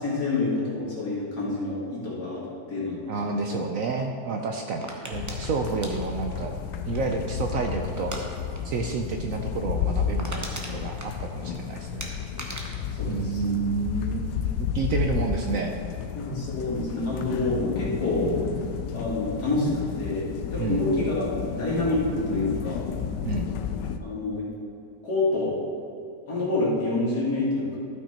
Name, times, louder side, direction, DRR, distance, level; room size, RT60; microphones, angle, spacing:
voice 1, 0.0-3.3 12.9-13.6 16.1-18.3 18.9-19.7 20.0-21.3 21.5-22.8 24.0-24.4 25.0-25.6 26.3-27.8, left 2 dB, 70° left, -6 dB, 2.6 m, -27 dB
voice 2, 3.1-6.6 6.9-8.1 8.6-12.1 13.1-15.7 20.6-20.8 23.2-23.5, right 4 dB, 70° right, 3 dB, 0.8 m, -30 dB
sound 1, 4.8-7.4 8.0-8.2 8.5-8.8 9.0-9.1 9.6-9.7 9.9-11.6 12.0-14.0 14.3-14.8, right 1 dB, 15° right, 0.6 m, -39 dB
sound 2, 5.1-24.0, left 8 dB, 85° left, 1.2 m, -32 dB
13.0 x 5.9 x 4.3 m, 2.6 s
omnidirectional pair, 1.8 m